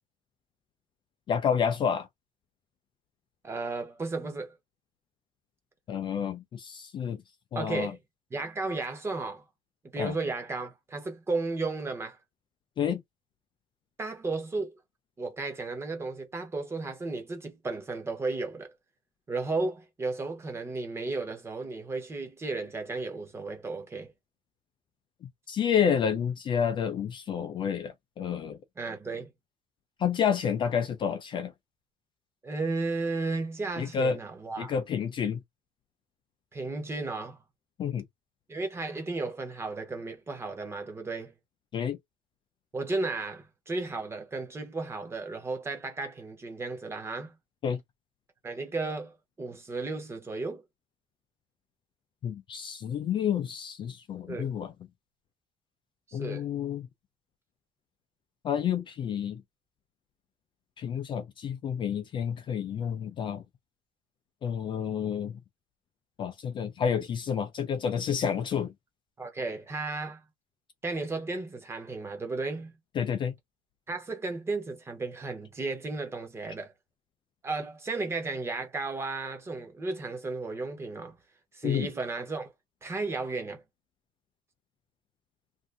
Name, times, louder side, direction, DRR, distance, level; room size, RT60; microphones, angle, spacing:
voice 1, 1.3-2.1 5.9-7.2 7.5-7.9 10.0-10.1 12.8-13.0 25.5-28.6 30.0-31.5 33.8-34.2 34.6-35.4 37.8-38.0 41.7-42.0 47.6-47.8 52.2-54.7 56.1-56.9 58.4-59.4 60.8-63.4 64.4-65.4 66.2-68.7 73.0-73.3 81.6-81.9, left 7 dB, 30° left, 0.4 m, -29 dB
voice 2, 3.4-4.5 7.5-8.0 8.3-9.4 9.9-12.2 14.0-14.7 15.2-18.7 19.3-24.1 28.8-29.3 32.4-34.8 36.5-37.4 38.5-41.3 42.7-47.3 48.4-50.6 54.3-54.5 56.1-56.5 69.2-70.2 70.8-72.7 73.9-76.7 77.4-81.2 81.5-82.5 82.8-83.6, right 3 dB, 15° right, 0.8 m, -34 dB
2.6 x 2.5 x 3.3 m
cardioid pair, 170°, 16 cm